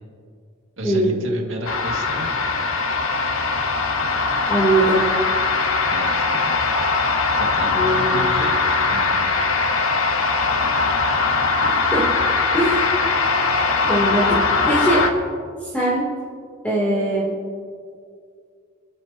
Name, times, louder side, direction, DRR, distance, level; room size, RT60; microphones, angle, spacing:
voice 1, 0.8-2.4 5.9-6.6 7.4-9.3, right 1 dB, 70° right, 0 dB, 2.1 m, -32 dB
sound 1, 1.7-15.1, left 4 dB, 90° left, 1.2 m, -21 dB
voice 2, 4.5-5.0 7.7-8.2 11.6-12.0 12.5-13.0 13.7-15.1 15.6-16.0 16.6-17.4, right 1 dB, 10° left, -8 dB, 3.0 m, -21 dB
26.0 x 13.0 x 2.9 m, 2.2 s
head